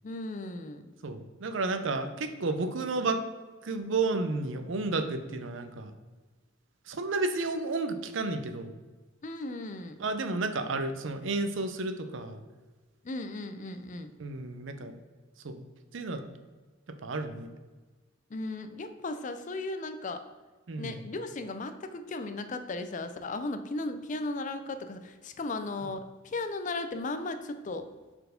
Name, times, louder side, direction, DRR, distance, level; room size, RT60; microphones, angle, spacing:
voice 1, 0.0-0.9 9.2-10.0 13.0-14.1 18.3-20.2 20.8-27.9, left 2 dB, 40° left, 9 dB, 0.5 m, -36 dB
voice 2, 1.0-3.2 3.6-5.9 6.9-8.7 10.0-12.4 14.2-15.0 15.4-15.6 15.9-16.2 17.0-17.5 20.7-21.0, right 3 dB, 70° right, 9 dB, 0.6 m, -32 dB
4.5 x 4.3 x 5.0 m, 1.3 s
head